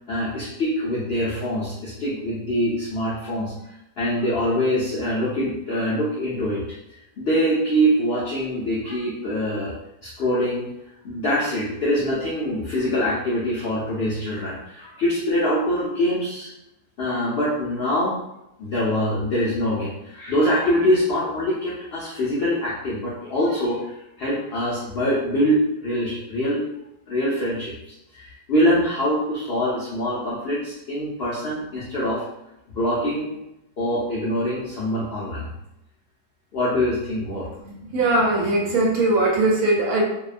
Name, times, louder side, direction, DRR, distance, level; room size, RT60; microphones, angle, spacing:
voice 1, 0.1-3.5 4.0-6.6 7.2-9.7 10.0-10.7 11.0-16.5 17.0-18.2 18.6-26.6 27.1-32.2 32.7-33.3 33.8-35.5 36.5-37.5, equal, 80° left, -6 dB, 0.5 m, -24 dB
voice 2, 37.6-40.0, right 2 dB, 70° right, -2 dB, 1.1 m, -20 dB
2.7 x 2.1 x 2.4 m, 0.88 s
omnidirectional pair, 1.7 m